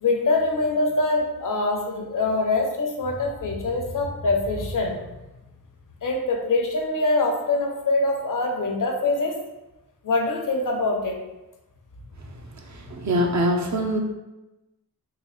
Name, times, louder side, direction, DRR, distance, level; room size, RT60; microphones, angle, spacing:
voice 1, 0.0-5.0 6.0-9.4 10.0-11.2, left 2 dB, 55° left, 1 dB, 0.7 m, -24 dB
voice 2, 12.7-14.0, equal, 50° right, 2 dB, 0.6 m, -23 dB
3.8 x 2.4 x 3.2 m, 1.0 s
wide cardioid pair, 95°, 38 cm